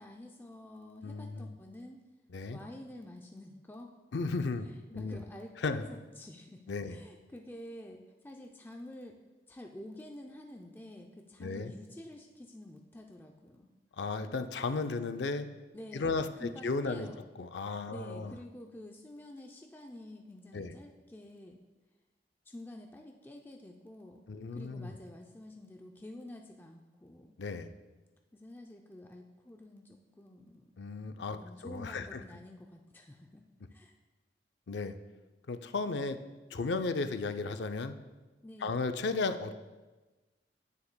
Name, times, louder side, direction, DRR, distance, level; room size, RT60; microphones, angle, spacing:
voice 1, 0.0-2.0 2.5-3.9 4.6-9.2 9.5-13.7 15.7-17.2 17.9-21.6 22.5-24.2 24.5-27.3 28.3-30.7 31.3-33.4 33.7-33.9 38.4-38.8, left 1 dB, 10° left, 2 dB, 0.4 m, -49 dB
voice 2, 1.0-1.5 2.3-2.6 4.1-4.7 4.9-5.2 5.6-5.8 6.7-7.0 11.4-11.7 14.0-15.5 15.9-17.1 17.4-18.3 20.5-20.8 24.3-24.9 27.4-27.7 30.8-31.4 31.6-32.2 34.7-34.9 35.5-36.2 36.5-38.0 38.6-39.5, left 3 dB, 80° left, 9 dB, 0.5 m, -34 dB
9.6 x 9.6 x 2.2 m, 1.2 s
head